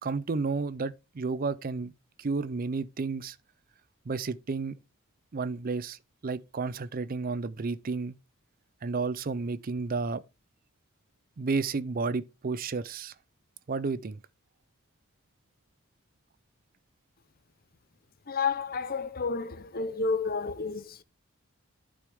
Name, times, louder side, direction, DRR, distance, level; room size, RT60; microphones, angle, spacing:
voice 1, 0.0-1.9 2.2-3.4 4.1-4.8 5.3-8.2 8.8-10.2 11.4-13.1 13.7-14.2, right 4 dB, 40° right, 0.5 m, -32 dB
voice 2, 18.3-21.0, left 4 dB, 45° left, 0.8 m, -31 dB
11.5 x 6.3 x 3.5 m
head